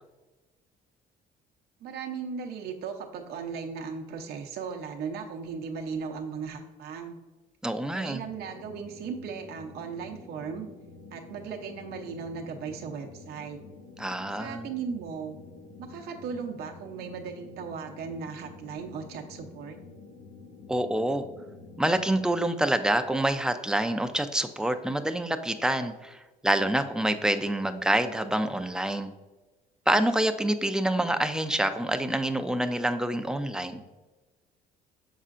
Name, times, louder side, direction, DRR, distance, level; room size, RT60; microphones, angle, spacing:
voice 1, 1.8-7.2 7.9-10.7 11.1-13.6 14.4-15.4 15.8-19.8, right 6 dB, 70° right, 3 dB, 0.7 m, -37 dB
voice 2, 7.6-8.2 14.0-14.7 20.7-21.3 21.8-29.1 29.9-33.8, right 1 dB, 5° right, 7 dB, 0.4 m, -27 dB
sound 1, 8.2-22.3, left 4 dB, 85° left, 1.0 m, -48 dB
7.1 x 5.6 x 2.5 m, 1.2 s
cardioid pair, 110°, 17 cm